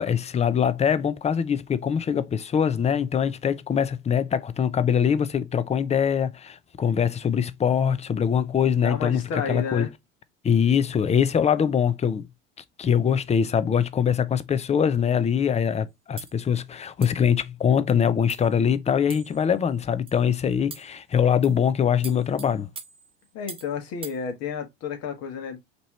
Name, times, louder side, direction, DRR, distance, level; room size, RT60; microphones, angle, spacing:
voice 1, 0.0-9.9 10.4-12.3 12.8-22.7, left 7 dB, 20° left, 0.6 m, -23 dB
voice 2, 8.8-9.9 23.3-25.6, left 6 dB, 55° left, 1.5 m, -31 dB
sound 1, 16.2-16.4 17.0-17.3 17.9-18.0 18.3-18.5 19.1-19.5 20.1-20.2 20.7-21.0 21.4-21.6 22.0-23.7 24.0-24.2, right 5 dB, 20° right, 0.8 m, -42 dB
5.2 x 3.0 x 3.1 m
hypercardioid pair, 80°, 30 cm